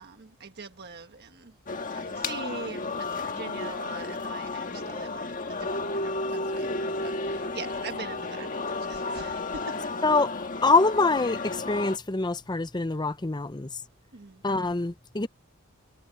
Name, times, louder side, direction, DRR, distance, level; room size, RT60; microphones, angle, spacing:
voice 1, 0.0-1.5 2.2-5.4 5.9-8.5 8.8-9.6 14.1-14.3, right 4 dB, 50° right, 1.4 m, -42 dB
sound 1, 1.7-12.0, left 3 dB, 40° left, 1.5 m, -32 dB
voice 2, 10.6-13.7 14.4-15.3, left 3 dB, 20° left, 0.7 m, -25 dB
head